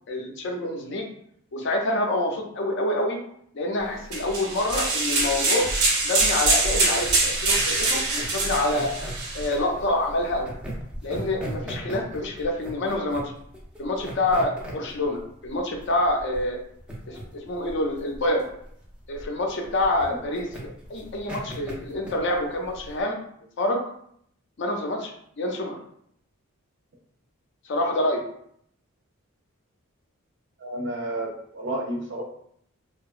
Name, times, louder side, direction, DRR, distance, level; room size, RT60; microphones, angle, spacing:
voice 1, 0.1-1.1 1.5-3.2 3.5-5.7 6.0-8.9 9.3-10.5 11.0-13.3 13.8-16.6 17.1-18.4 19.1-23.2 23.6-23.8 24.6-25.8 27.7-28.2, left 1 dB, 55° left, 2 dB, 0.4 m, -27 dB
sound 1, 4.1-9.5, right 2 dB, 90° right, 0.7 m, -24 dB
sound 2, 6.9-23.0, equal, 5° right, 0.4 m, -38 dB
voice 2, 30.6-32.2, right 1 dB, 55° right, 0 dB, 0.5 m, -31 dB
2.7 x 2.2 x 2.4 m, 0.68 s
head